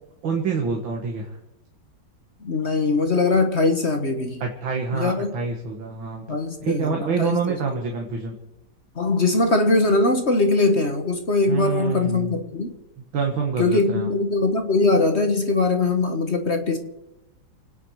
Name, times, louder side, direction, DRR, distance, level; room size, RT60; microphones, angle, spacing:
voice 1, 0.2-1.3 4.4-8.4 11.5-12.4 13.1-14.1, right 5 dB, 75° right, 1 dB, 2.6 m, -27 dB
voice 2, 2.4-4.4 4.9-5.3 6.3-7.8 8.9-12.8 13.6-16.8, left 3 dB, 35° left, 5 dB, 1.6 m, -21 dB
28.5 x 10.0 x 4.8 m, 0.94 s
omnidirectional pair, 2.2 m